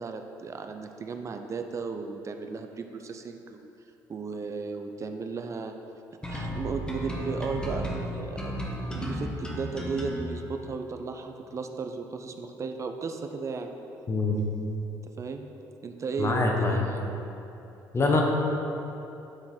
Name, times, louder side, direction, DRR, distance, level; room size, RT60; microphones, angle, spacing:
voice 1, 0.0-3.7 4.1-5.8 6.3-8.5 8.9-13.7 15.2-15.5 15.8-17.0, right 4 dB, 40° right, 6 dB, 0.6 m, -35 dB
sound 1, 6.2-10.2, equal, 10° left, 1.2 m, -33 dB
voice 2, 14.1-14.4 16.2-16.8 17.9-18.2, left 3 dB, 35° left, 0 dB, 1.2 m, -24 dB
9.8 x 3.8 x 4.4 m, 2.9 s
supercardioid pair, 75°, 8 cm